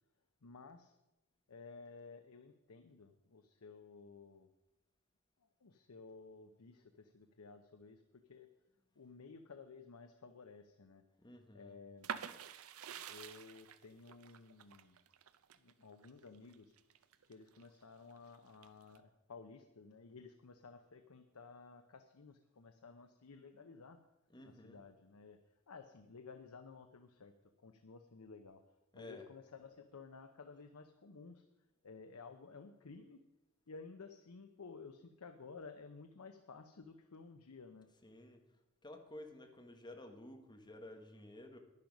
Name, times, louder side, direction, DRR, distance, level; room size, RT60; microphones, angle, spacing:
voice 1, 0.4-1.0 1.5-4.5 5.6-8.5 8.9-11.0 11.5-12.1 13.1-15.0 15.5-16.7 17.2-24.0 24.4-31.4 31.8-33.2 33.7-37.9, left 4 dB, 90° left, 7 dB, 0.7 m, -55 dB
voice 2, 11.2-11.8 24.3-24.8 28.9-29.3 38.0-38.4 38.8-41.6, left 1 dB, 20° left, 4 dB, 1.3 m, -53 dB
sound 1, 12.0-17.7 18.1-19.0, right 8 dB, 75° right, 0.6 m, -48 dB
11.0 x 10.5 x 5.3 m, 0.94 s
head